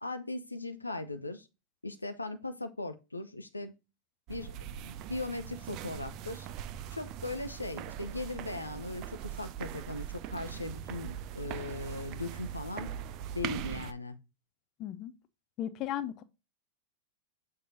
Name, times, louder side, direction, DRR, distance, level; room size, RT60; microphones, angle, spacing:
voice 1, 0.0-1.5 1.8-3.7 4.3-6.5 6.9-12.9 13.3-14.2, left 2 dB, 80° left, 0.6 m, -39 dB
sound 1, 4.3-13.9, right 10 dB, 40° right, 0.4 m, -41 dB
voice 2, 14.8-15.1 15.6-16.2, left 11 dB, 35° left, 0.5 m, -35 dB
6.7 x 2.8 x 5.0 m
figure-of-eight pair, 90°, 0 cm